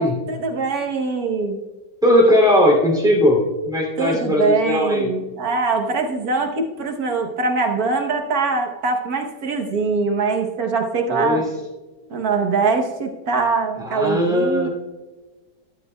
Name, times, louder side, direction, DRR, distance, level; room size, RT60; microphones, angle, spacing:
voice 1, 0.0-1.6 4.0-11.4 12.1-14.7, right 4 dB, 60° right, 3 dB, 1.4 m, -22 dB
voice 2, 2.0-5.1 11.1-11.4 13.8-14.7, left 1 dB, ahead, -2 dB, 2.4 m, -18 dB
13.0 x 12.0 x 2.2 m, 1.2 s
omnidirectional pair, 1.9 m